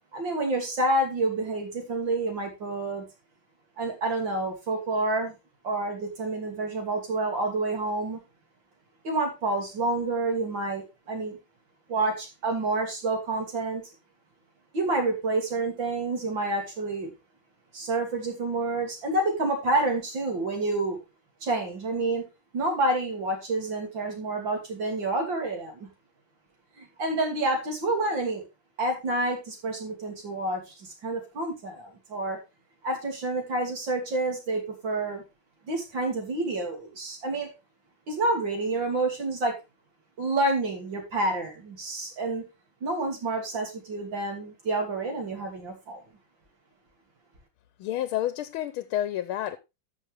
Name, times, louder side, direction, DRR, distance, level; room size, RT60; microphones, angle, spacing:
voice 1, 0.1-3.0 3.8-5.3 5.6-8.2 9.0-11.4 11.9-13.8 14.7-17.1 17.7-21.0 21.4-22.3 22.5-25.9 26.8-28.5 28.8-32.4 32.8-35.2 35.7-37.5 38.1-39.6 40.2-42.5 42.8-46.0, right 2 dB, 60° right, 3.5 m, -28 dB
voice 2, 47.8-49.6, left 12 dB, 85° left, 1.6 m, -29 dB
12.5 x 6.4 x 3.4 m
omnidirectional pair, 2.3 m